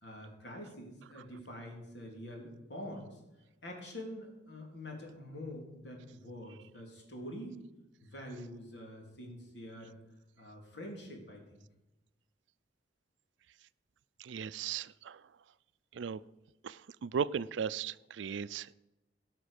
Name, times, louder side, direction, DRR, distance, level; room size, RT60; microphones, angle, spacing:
voice 1, 0.0-3.2 3.6-7.6 8.0-10.0 10.4-11.6, left 1 dB, 65° left, 1 dB, 3.3 m, -46 dB
voice 2, 14.2-15.2 15.9-16.2 16.6-18.7, right 7 dB, 85° right, 17 dB, 0.4 m, -37 dB
17.0 x 6.0 x 6.4 m, 1.0 s
head